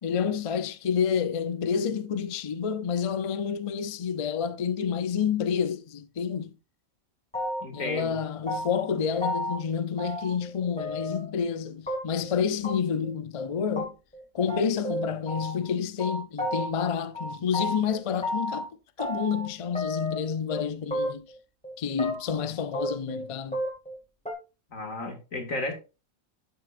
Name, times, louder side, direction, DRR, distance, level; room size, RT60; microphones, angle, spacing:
voice 1, 0.0-6.6 7.7-13.9 14.3-18.7 19.0-21.3 21.8-23.6, left 7 dB, 45° left, 0.4 m, -29 dB
sound 1, 7.3-7.8 8.1-8.9 9.2-9.6 10.0-10.5 10.8-11.3 11.9-12.3 12.6-12.7 13.0-13.1 13.4-13.5 13.8-13.9 14.1-14.2 14.5-15.7 16.0-16.9 17.1-18.7 19.0-19.5 19.8-20.6 20.9-21.4 21.6-22.4 22.7-24.0 24.3-24.4, equal, 5° left, 2.1 m, -32 dB
voice 2, 7.6-8.2 24.7-25.7, left 2 dB, 80° left, 2.4 m, -33 dB
12.0 x 6.1 x 2.5 m
omnidirectional pair, 1.4 m